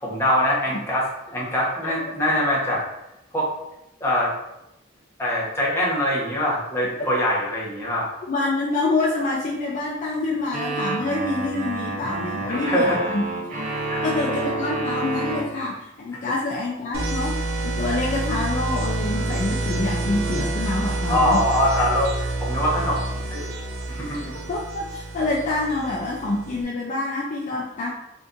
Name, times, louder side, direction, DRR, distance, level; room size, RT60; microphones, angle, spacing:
voice 1, 0.0-2.8 3.3-3.5 4.0-4.3 5.2-8.1 12.5-13.1 13.9-14.1 16.1-16.3 21.1-23.5 23.9-24.4, equal, 15° left, -5 dB, 0.8 m, -23 dB
voice 2, 8.3-13.3 14.0-21.4 24.5-27.9, left 2 dB, 40° left, -2 dB, 0.4 m, -26 dB
sound 1, 10.5-15.4, right 2 dB, 40° right, 0.6 m, -28 dB
sound 2, 16.9-26.6, right 2 dB, 80° right, 0.8 m, -28 dB
2.6 x 2.5 x 3.5 m, 0.88 s
head